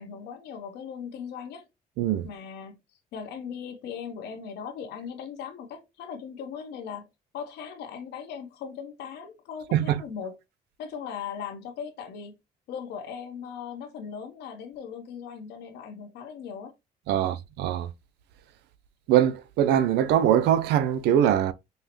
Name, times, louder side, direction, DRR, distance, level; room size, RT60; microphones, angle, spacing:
voice 1, 0.0-1.6 2.2-2.8 3.1-7.1 7.3-10.4 10.8-12.4 12.7-16.7 17.1-17.3, left 7 dB, 80° left, 1.1 m, -38 dB
voice 2, 2.0-2.3 9.7-10.0 17.1-17.9 19.1-21.5, right 10 dB, 85° right, 0.5 m, -22 dB
5.5 x 2.1 x 3.0 m
cardioid pair, 110°, 17 cm